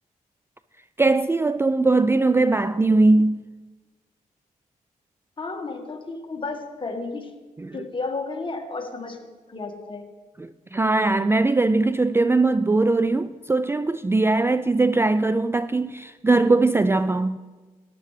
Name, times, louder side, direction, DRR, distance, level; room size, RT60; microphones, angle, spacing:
voice 1, 1.0-3.4 7.6-7.8 10.4-17.4, right 3 dB, 15° right, 0.4 m, -20 dB
voice 2, 5.4-7.3 7.7-9.2 9.5-10.0, left 3 dB, 35° left, 1.7 m, -32 dB
13.5 x 11.0 x 3.3 m
supercardioid pair, 55°, 15 cm